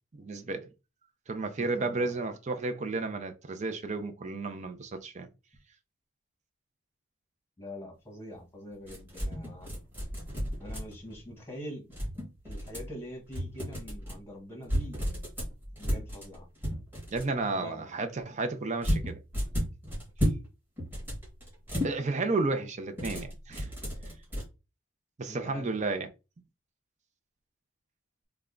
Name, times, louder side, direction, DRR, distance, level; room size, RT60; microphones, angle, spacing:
voice 1, 0.2-0.7 1.3-5.3 17.1-19.2 21.8-23.7 25.2-26.1, right 3 dB, 35° right, 0.5 m, -32 dB
voice 2, 1.6-2.2 7.6-9.7 10.6-11.9 12.4-15.0 15.8-16.5 17.5-17.9 25.3-25.7, equal, 10° left, 1.2 m, -44 dB
sound 1, 8.9-11.1 11.9-12.9 13.3-14.2 14.6-17.3 18.8-20.5 20.8-21.9 22.9-24.4, equal, 10° right, 1.8 m, -33 dB
3.4 x 2.2 x 3.7 m
head